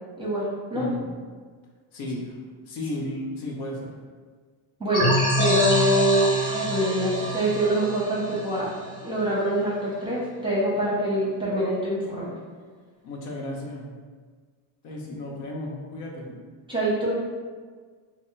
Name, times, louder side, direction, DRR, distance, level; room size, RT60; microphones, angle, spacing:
voice 1, 0.2-0.9 4.8-8.7 9.0-12.3 16.7-17.2, right 1 dB, 10° right, -6 dB, 0.7 m, -25 dB
voice 2, 0.7-1.1 1.9-2.4 2.7-3.9 13.0-13.9 14.8-16.3, left 1 dB, 75° left, -2 dB, 1.0 m, -33 dB
sound 1, 4.9-9.4, equal, 10° left, 1.0 m, -26 dB
3.5 x 2.1 x 4.3 m, 1.6 s
cardioid pair, 135°, 48 cm